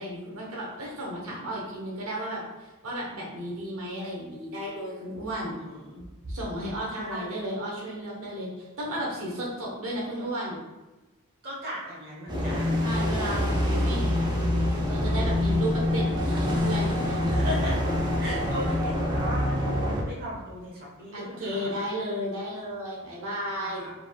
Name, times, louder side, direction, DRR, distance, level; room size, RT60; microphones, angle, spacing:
voice 1, 0.0-5.5 6.2-10.6 12.8-14.3 14.9-17.2 21.1-23.9, equal, 65° right, -3 dB, 1.0 m, -34 dB
voice 2, 5.4-6.0 6.9-7.3 11.4-12.9 17.3-17.8 18.2-21.7 23.5-23.9, equal, 45° right, -4 dB, 1.0 m, -38 dB
sound 1, 12.3-20.0, left 1 dB, 20° right, 0.6 m, -25 dB
5.3 x 3.6 x 2.3 m, 1.1 s
head